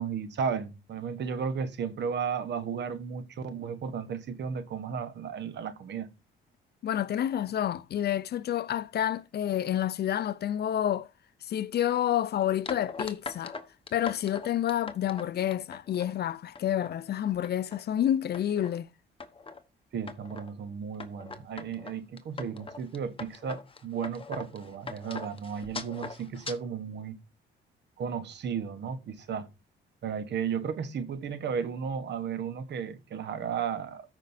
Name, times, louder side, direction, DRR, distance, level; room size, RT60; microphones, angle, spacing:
voice 1, 0.0-6.1 19.9-27.2 28.0-29.5 30.0-34.0, right 6 dB, 60° right, 1.2 m, -34 dB
voice 2, 6.8-11.1 11.4-13.6 13.9-18.9, left 11 dB, 55° left, 0.5 m, -29 dB
sound 1, 12.7-16.1 16.6-16.9 17.3-17.8 18.3-18.8 19.2-19.6 20.1-20.5 21.0-26.6, left 4 dB, 25° left, 1.1 m, -41 dB
13.5 x 5.2 x 2.6 m
cardioid pair, 90°, 20 cm